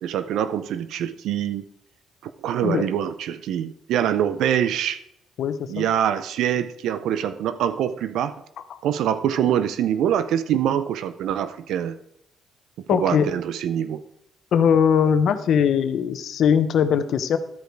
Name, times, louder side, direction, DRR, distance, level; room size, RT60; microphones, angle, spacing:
voice 1, 0.0-1.6 2.2-5.0 5.7-8.3 8.8-12.0 12.9-14.0, right 10 dB, 80° right, 12 dB, 0.5 m, -24 dB
voice 2, 5.4-5.9 8.7-8.8 12.9-13.3 14.5-17.4, left 7 dB, 70° left, 10 dB, 0.8 m, -20 dB
13.0 x 5.1 x 4.6 m, 0.78 s
cardioid pair, 90°, 0 cm